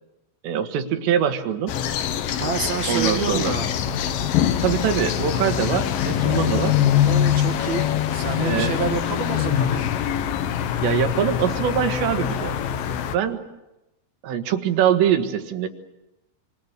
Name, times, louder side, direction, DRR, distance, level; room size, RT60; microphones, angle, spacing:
voice 1, 0.4-1.8 2.9-3.5 4.6-6.8 8.4-8.7 10.8-12.6 13.1-13.4 14.2-15.7, right 9 dB, 70° right, 6 dB, 3.6 m, -23 dB
sound 1, 1.7-13.2, left 10 dB, 75° left, 2.1 m, -23 dB
voice 2, 2.4-3.7 6.9-9.9, right 5 dB, 55° right, 5 dB, 2.1 m, -28 dB
27.0 x 26.0 x 6.7 m, 0.97 s
omnidirectional pair, 5.5 m